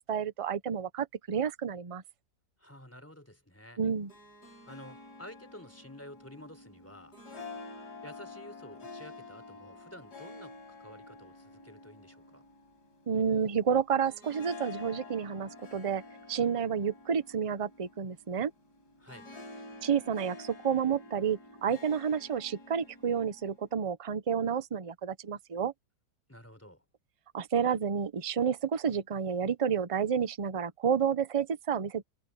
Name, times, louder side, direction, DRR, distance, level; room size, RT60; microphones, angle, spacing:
voice 1, 0.1-2.0 3.8-4.1 13.1-16.0 16.3-18.5 19.8-25.7 27.3-32.0, right 7 dB, 40° right, 0.4 m, -30 dB
voice 2, 2.6-3.8 4.7-7.1 8.0-12.4 19.0-19.3 26.3-26.8, left 1 dB, 10° left, 3.8 m, -51 dB
Harp, 3.9-23.7, left 3 dB, 85° left, 5.1 m, -49 dB
omnidirectional pair, 1.7 m